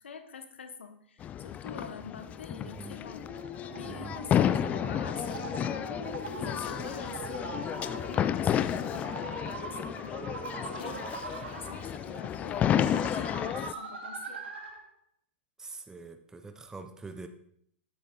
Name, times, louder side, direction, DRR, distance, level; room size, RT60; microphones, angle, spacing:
voice 1, 0.0-3.2 3.7-6.0 6.3-14.5, left 5 dB, 85° left, 9 dB, 1.1 m, -46 dB
sound 1, 1.2-13.7, left 9 dB, 25° left, 0.4 m, -31 dB
sound 2, 2.2-14.9, right 4 dB, 80° right, 2.0 m, -43 dB
voice 2, 3.8-4.2 15.6-17.3, right 4 dB, 10° right, 8 dB, 0.7 m, -44 dB
sound 3, 5.1-5.6 6.3-6.4 6.6-7.4 7.9-8.0 8.4-9.4 10.7-11.6 12.4-12.5 12.8-13.5 13.8-13.9, left 8 dB, 60° left, 1.0 m, -53 dB
8.3 x 8.3 x 3.8 m, 0.68 s
hypercardioid pair, 125°, 6 cm